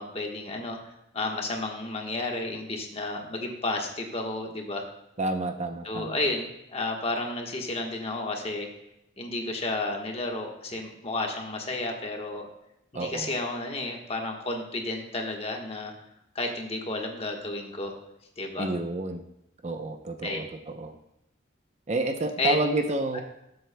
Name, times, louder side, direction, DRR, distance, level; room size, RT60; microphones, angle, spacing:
voice 1, 0.0-4.8 5.8-8.7 9.2-12.5 12.9-15.9 16.3-18.0 18.4-18.7 20.2-20.4 22.4-22.6 23.1-23.2, left 2 dB, 30° left, 2 dB, 1.3 m, -32 dB
voice 2, 5.2-6.1 12.9-13.3 18.6-19.2 19.6-20.9 21.9-23.2, right 2 dB, 35° right, 5 dB, 0.6 m, -29 dB
19.0 x 7.7 x 2.2 m, 0.84 s
head